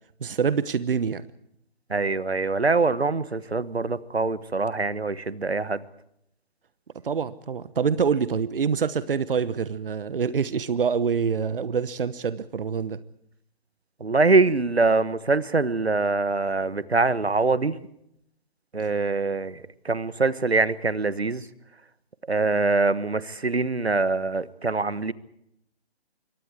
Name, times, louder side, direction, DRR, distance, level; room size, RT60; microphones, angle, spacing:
voice 1, 0.2-1.2 7.0-13.0, right 6 dB, 60° right, 16 dB, 1.1 m, -26 dB
voice 2, 1.9-5.8 14.0-17.8 18.7-21.4 22.3-25.1, right 3 dB, 85° right, 16 dB, 1.4 m, -24 dB
26.5 x 24.0 x 4.8 m, 0.76 s
figure-of-eight pair, 140°, 31 cm